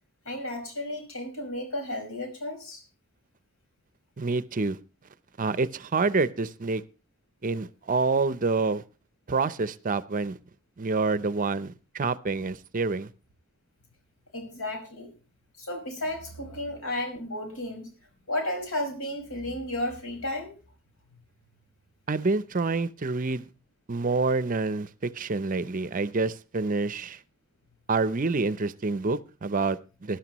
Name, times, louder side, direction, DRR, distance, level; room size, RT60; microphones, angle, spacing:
voice 1, 0.3-2.8 14.3-15.1 15.6-17.9 18.3-20.5, left 1 dB, 75° left, 5.4 m, -33 dB
voice 2, 4.2-4.8 5.4-6.8 7.4-8.8 9.3-10.4 10.8-13.1 22.1-23.5 23.9-27.2 27.9-30.2, right 3 dB, 40° right, 0.6 m, -27 dB
19.5 x 11.5 x 3.0 m
head